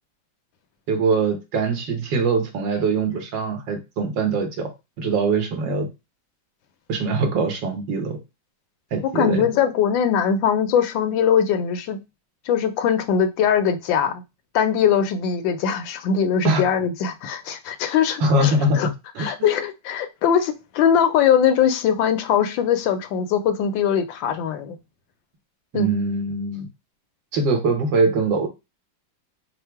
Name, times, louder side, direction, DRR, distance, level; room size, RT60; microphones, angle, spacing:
voice 1, 0.9-4.7 5.0-5.9 6.9-8.2 8.9-9.5 16.4-16.8 18.2-18.8 19.2-19.3 25.7-26.7 27.3-28.5, right 3 dB, 80° right, 1.8 m, -22 dB
voice 2, 9.1-12.0 12.5-14.2 14.5-18.9 19.2-24.8 25.7-25.9, left 8 dB, 90° left, 1.4 m, -21 dB
4.7 x 2.0 x 4.5 m
omnidirectional pair, 2.0 m